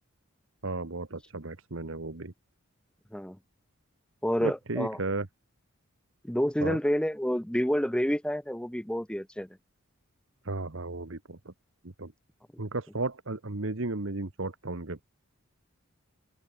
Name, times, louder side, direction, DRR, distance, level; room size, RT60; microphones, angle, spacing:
voice 1, 0.6-2.3 4.4-5.3 6.6-6.8 10.4-11.5 11.8-12.1 12.6-15.0, right 2 dB, 60° right, 1.3 m, -34 dB
voice 2, 4.2-5.0 6.2-9.5, equal, 5° left, 0.8 m, -28 dB
open air
head